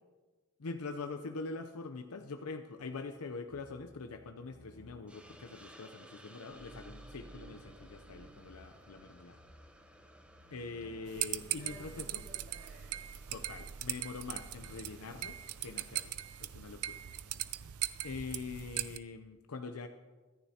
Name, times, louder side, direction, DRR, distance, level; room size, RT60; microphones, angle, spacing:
voice 1, 0.6-9.4 10.5-12.2 13.3-16.1 16.4-17.0 18.0-19.9, left 4 dB, 85° left, 7 dB, 0.6 m, -44 dB
sound 1, 2.8-15.3, equal, 55° right, 3.0 m, -58 dB
Hiss, 5.1-17.6, right 1 dB, 5° right, 0.7 m, -60 dB
voice 2, 10.6-11.1 11.5-13.1 17.0-17.4, equal, 25° right, -9 dB, 4.2 m, -58 dB
sound 2, 11.1-19.0, right 13 dB, 80° right, 0.5 m, -40 dB
24.0 x 10.5 x 2.9 m, 1.3 s
head